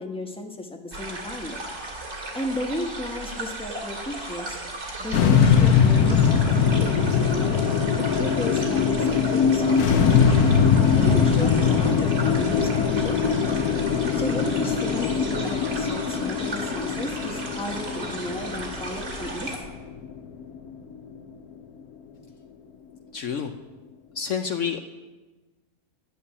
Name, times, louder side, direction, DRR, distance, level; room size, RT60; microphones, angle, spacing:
voice 1, 0.0-1.6 2.3-4.6 5.0-7.6 8.0-10.0 11.0-13.5 14.1-19.6, left 1 dB, 5° left, 3 dB, 1.2 m, -34 dB
sound 1, 0.9-19.6, right 2 dB, 60° right, 2.7 m, -36 dB
sound 2, 5.1-21.5, left 6 dB, 80° left, 1.2 m, -21 dB
voice 2, 23.1-23.5 24.2-24.8, left 7 dB, 65° left, 6 dB, 0.9 m, -28 dB
11.0 x 7.1 x 9.7 m, 1.2 s
omnidirectional pair, 1.6 m